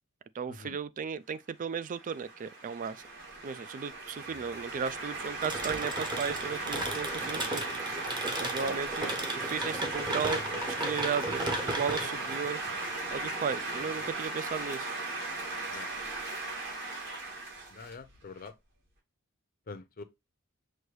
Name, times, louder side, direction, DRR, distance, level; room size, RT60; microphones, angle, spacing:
voice 1, 0.3-3.0 3.4-7.7 8.4-10.4 10.7-12.6 13.1-14.9, right 6 dB, 40° right, 0.3 m, -35 dB
sound 1, 1.8-18.5, right 3 dB, 55° right, 2.3 m, -37 dB
sound 2, 5.4-14.1, right 1 dB, 20° right, 0.9 m, -36 dB
voice 2, 17.7-18.5 19.7-20.0, left 4 dB, 45° left, 0.6 m, -44 dB
6.2 x 2.7 x 3.1 m
head